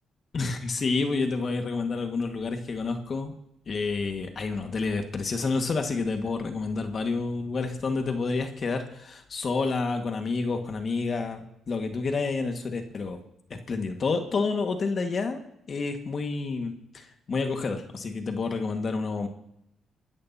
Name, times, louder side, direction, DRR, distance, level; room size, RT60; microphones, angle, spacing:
voice 1, 0.3-3.3 3.6-13.2 13.7-15.4 15.7-19.3, left 4 dB, 45° left, 5 dB, 1.8 m, -29 dB
24.5 x 13.5 x 2.9 m, 0.78 s
cardioid pair, 90°, 0 cm